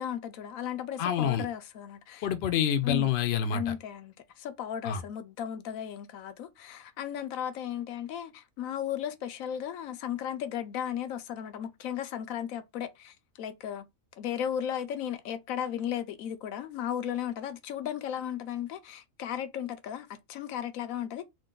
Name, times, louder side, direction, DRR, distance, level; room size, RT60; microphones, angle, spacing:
voice 1, 0.0-2.3 2.8-3.1 3.5-13.9 14.2-21.2, left 9 dB, 85° left, 1.0 m, -35 dB
voice 2, 1.0-1.5 2.2-3.7 4.8-5.0, left 8 dB, 65° left, 0.7 m, -27 dB
3.8 x 2.3 x 3.7 m
omnidirectional pair, 1.4 m